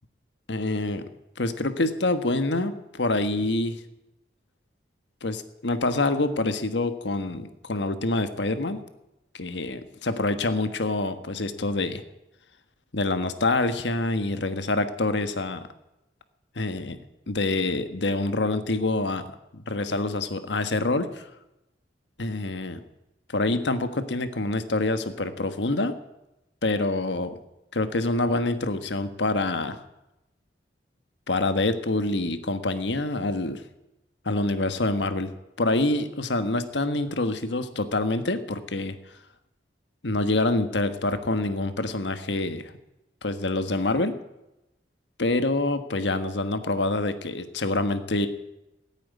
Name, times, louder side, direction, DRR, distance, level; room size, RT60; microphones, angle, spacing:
voice 1, 0.5-1.0 1.4-3.8 5.2-8.8 9.3-12.0 12.9-15.6 16.5-17.0 17.3-19.2 19.5-21.3 22.2-22.8 23.3-25.9 26.6-27.4 27.7-29.8 31.3-33.6 34.2-35.3 35.6-38.9 40.0-42.7 43.2-44.2 45.2-48.3, left 2 dB, 85° left, 10 dB, 1.3 m, -26 dB
15.5 x 9.0 x 9.3 m, 0.93 s
head